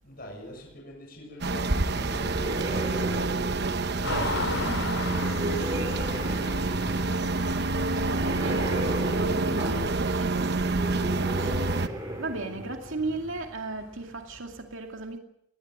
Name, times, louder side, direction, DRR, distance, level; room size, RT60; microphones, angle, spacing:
voice 1, 0.0-7.4, equal, 45° left, 6.8 m, -43 dB
sound 1, 1.4-11.9, right 3 dB, 50° right, 1.0 m, -28 dB
sound 2, 1.7-13.5, right 1 dB, 20° right, 5.8 m, -36 dB
sound 3, 4.0-14.6, left 3 dB, 75° left, 3.3 m, -38 dB
voice 2, 7.9-8.8 9.1-15.2, right 3 dB, 70° right, 2.4 m, -37 dB
21.5 x 19.5 x 7.7 m
head